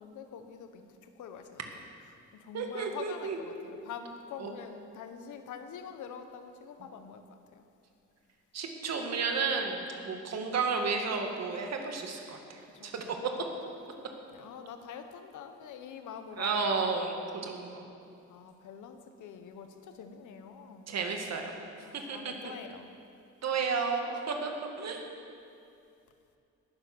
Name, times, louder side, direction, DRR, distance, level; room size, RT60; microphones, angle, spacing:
voice 1, 0.0-1.8 2.3-7.6 12.6-12.9 14.0-16.6 18.3-20.9 21.8-23.0, left 7 dB, 80° left, 8 dB, 1.1 m, -46 dB
voice 2, 2.5-3.4 4.4-4.5 8.5-13.0 16.4-17.9 20.9-21.5 21.9-22.5 23.4-24.5 24.8-25.1, right 4 dB, 60° right, 3 dB, 2.0 m, -32 dB
19.0 x 7.3 x 6.1 m, 2.5 s
cardioid pair, 90°, 30 cm